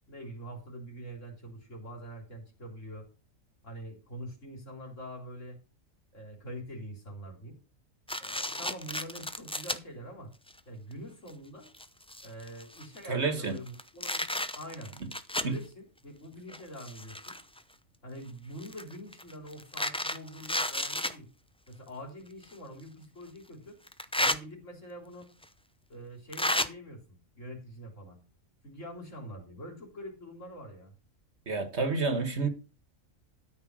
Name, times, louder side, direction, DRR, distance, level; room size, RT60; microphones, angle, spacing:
voice 1, 0.1-3.1 3.6-5.6 6.1-7.6 8.2-10.3 10.7-11.7 12.2-14.9 15.4-17.4 18.0-21.3 21.7-23.8 24.1-25.3 25.9-28.2 28.6-30.9, equal, 60° left, 3.9 m, -45 dB
sound 1, 8.1-9.8 10.5-10.6 11.3-11.4 11.7-13.1 13.6-15.6 16.5-17.6 18.6-21.2 22.4-22.5 23.9-24.4 25.4-25.5 26.3-26.7, left 1 dB, 10° left, 0.4 m, -32 dB
voice 2, 13.1-13.6 15.4-15.5 31.5-32.5, right 4 dB, 50° right, 1.8 m, -29 dB
13.0 x 5.6 x 6.2 m
omnidirectional pair, 1.4 m